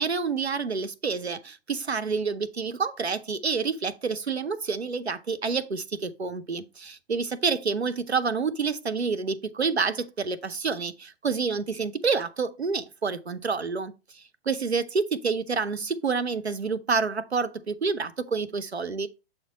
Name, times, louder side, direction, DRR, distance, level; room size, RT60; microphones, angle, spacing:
voice 1, 0.0-19.1, right 5 dB, 90° right, 0.8 m, -28 dB
6.7 x 4.4 x 3.9 m
figure-of-eight pair, 110°, 31 cm